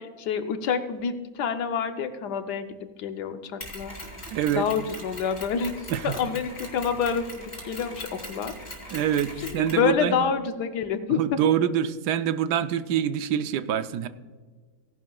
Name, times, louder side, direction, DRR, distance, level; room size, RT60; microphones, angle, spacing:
voice 1, 0.0-3.9 4.5-8.5 9.4-11.4, left 6 dB, 85° left, 8 dB, 1.4 m, -28 dB
Mechanisms, 3.6-9.9, equal, 25° left, 3.0 m, -41 dB
voice 2, 4.3-4.7 5.9-6.1 8.9-10.3 11.2-14.1, right 9 dB, 85° right, 12 dB, 1.2 m, -25 dB
16.5 x 11.0 x 2.3 m, 1.4 s
omnidirectional pair, 1.7 m